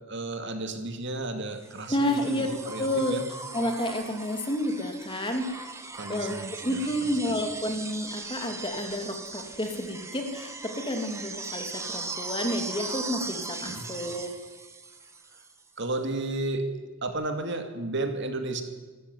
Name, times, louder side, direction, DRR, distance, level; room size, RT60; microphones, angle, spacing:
voice 1, 0.1-3.2 5.9-7.2 13.6-13.9 15.8-16.7 17.0-18.6, right 2 dB, 55° right, 6 dB, 2.5 m, -33 dB
sound 1, 1.6-15.6 17.1-17.2, right 3 dB, 15° right, 1.7 m, -39 dB
voice 2, 1.9-2.5 2.8-3.2 3.5-5.7 6.1-14.3, left 1 dB, 20° left, 4 dB, 2.7 m, -30 dB
26.0 x 14.0 x 9.5 m, 1.3 s
head